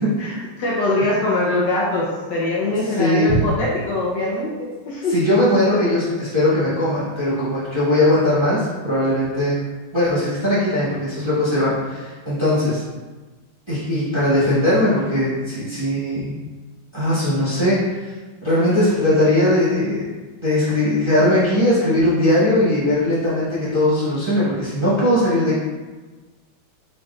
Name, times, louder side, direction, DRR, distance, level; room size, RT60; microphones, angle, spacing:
voice 1, 0.2-5.2, left 2 dB, 65° left, -5 dB, 1.3 m, -22 dB
voice 2, 3.0-3.4 5.1-9.6 9.9-12.8 13.7-16.3 16.9-18.1 18.4-20.1 20.4-25.6, left 1 dB, 15° right, -12 dB, 1.2 m, -19 dB
5.3 x 3.9 x 2.3 m, 1.3 s
omnidirectional pair, 2.2 m